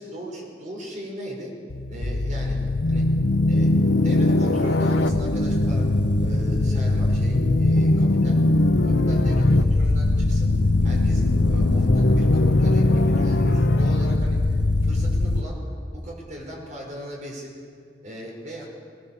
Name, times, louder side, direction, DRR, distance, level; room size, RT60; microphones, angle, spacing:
voice 1, 0.0-1.5 1.9-3.1 3.5-8.4 8.8-10.5 10.8-15.6 15.9-17.5 18.0-18.7, equal, 45° right, -1 dB, 5.3 m, -38 dB
sound 1, 1.7-15.4, left 2 dB, 80° left, 0.9 m, -20 dB
19.5 x 18.5 x 7.2 m, 2.1 s
head